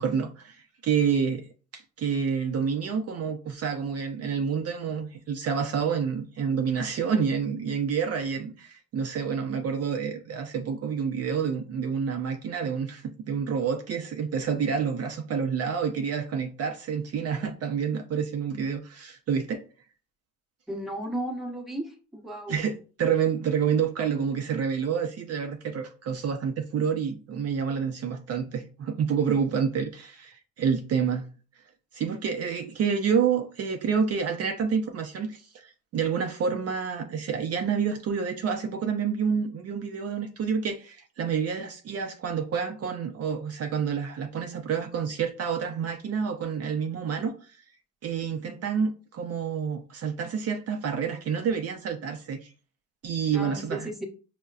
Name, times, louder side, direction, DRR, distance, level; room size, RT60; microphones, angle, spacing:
voice 1, 0.0-1.5 1.7-19.6 22.5-31.3 31.9-47.5 48.0-52.5 53.0-53.9, right 6 dB, 55° right, 0.5 m, -28 dB
voice 2, 20.7-22.6 53.3-54.1, right 1 dB, ahead, 0.9 m, -34 dB
5.4 x 2.1 x 2.4 m
cardioid pair, 90°, 30 cm